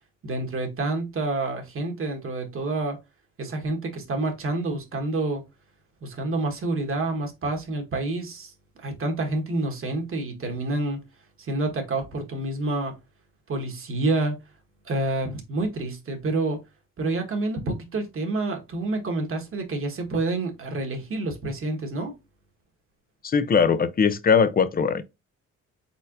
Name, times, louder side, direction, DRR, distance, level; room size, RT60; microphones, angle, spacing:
voice 1, 0.2-3.0 3.4-5.4 6.0-11.0 11.4-12.9 13.5-14.4 14.8-16.6 17.0-22.1, right 2 dB, 45° right, 1.5 m, -28 dB
voice 2, 23.2-25.0, left 6 dB, 30° left, 0.6 m, -20 dB
4.4 x 4.0 x 2.6 m
cardioid pair, 90°, 30 cm